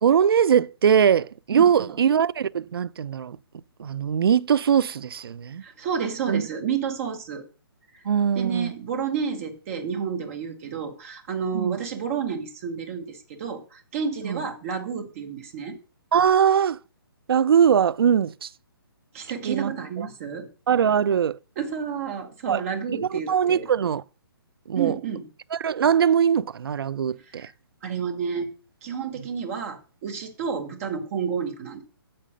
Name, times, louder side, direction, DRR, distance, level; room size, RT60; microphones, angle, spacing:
voice 1, 0.0-3.4 3.8-5.6 6.3-6.4 8.1-8.7 11.5-11.8 14.2-14.4 16.1-16.8 17.3-18.5 19.4-19.7 20.7-21.4 22.5-22.6 23.0-24.0 24.7-25.0 25.5-27.5, right 8 dB, 65° right, 0.4 m, -21 dB
voice 2, 1.5-2.0 5.6-7.4 7.9-8.0 8.3-15.8 19.1-20.5 21.6-23.7 24.7-25.2 27.3-27.5 27.8-28.5 28.8-31.8, right 6 dB, 35° right, 1.4 m, -30 dB
8.4 x 4.3 x 5.0 m
hypercardioid pair, 145°, 13 cm